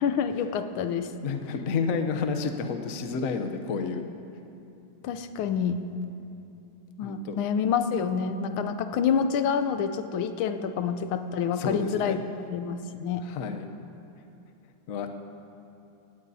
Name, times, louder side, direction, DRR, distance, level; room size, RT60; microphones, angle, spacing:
voice 1, 0.0-1.1 5.0-5.8 7.0-12.2 12.5-13.2, left 7 dB, 90° left, 9 dB, 1.5 m, -27 dB
voice 2, 1.2-4.0 7.0-7.4 11.5-12.2 13.2-13.7 14.9-15.1, left 5 dB, 55° left, 6 dB, 1.0 m, -30 dB
18.0 x 17.5 x 2.8 m, 2.7 s
omnidirectional pair, 2.2 m